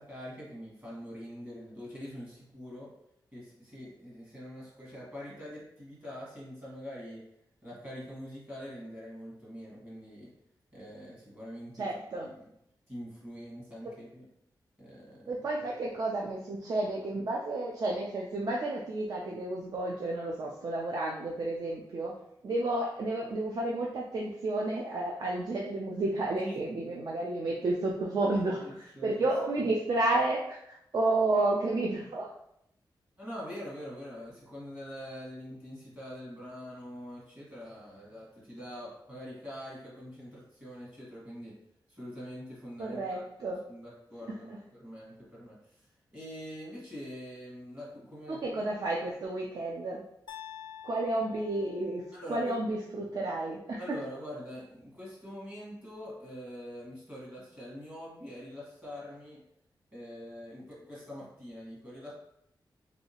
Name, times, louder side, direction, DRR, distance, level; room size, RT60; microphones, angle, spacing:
voice 1, 0.0-2.9 3.3-7.2 7.6-10.3 10.7-11.8 12.1-12.5 12.9-14.2 14.8-15.3 26.3-26.6 27.4-27.5 28.3-29.3 33.2-41.5 41.9-43.2 43.7-45.8 46.1-48.5 52.1-52.5 53.8-59.4 59.9-62.1, equal, 25° right, -7 dB, 1.3 m, -44 dB
voice 2, 11.8-12.3 15.3-22.1 22.4-32.3 42.8-43.6 44.3-44.6 48.3-50.0 50.8-52.0 52.3-53.8, right 2 dB, 55° right, -2 dB, 0.4 m, -31 dB
sound 1, 50.3-52.4, left 10 dB, 75° left, 0.4 m, -48 dB
3.1 x 2.7 x 2.8 m, 0.75 s
wide cardioid pair, 160°, 8 cm